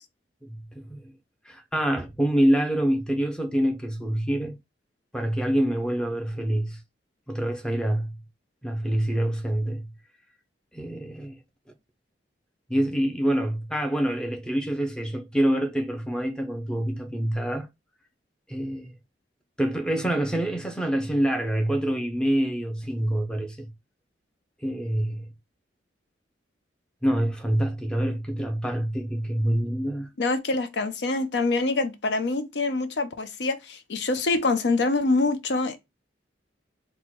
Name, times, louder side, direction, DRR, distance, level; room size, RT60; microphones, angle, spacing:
voice 1, 0.5-1.1 1.5-4.5 5.1-6.8 7.3-8.2 8.6-9.9 10.7-11.4 12.7-17.7 18.5-18.9 19.6-23.7 24.6-25.3 27.0-30.1, right 1 dB, 5° left, 0.6 m, -26 dB
voice 2, 30.2-35.8, left 3 dB, 70° left, 0.6 m, -25 dB
4.4 x 2.2 x 4.3 m
head